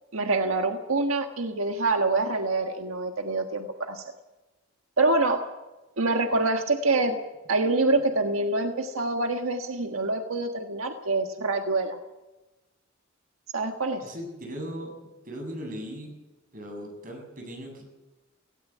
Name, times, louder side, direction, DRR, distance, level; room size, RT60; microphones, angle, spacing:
voice 1, 0.1-4.0 5.0-5.4 6.0-7.2 7.5-12.0 13.5-14.1, right 2 dB, 90° right, 5 dB, 1.5 m, -26 dB
voice 2, 14.0-14.9 15.2-16.1 16.5-17.8, equal, 40° right, 2 dB, 7.6 m, -38 dB
18.5 x 17.0 x 8.5 m, 1.1 s
head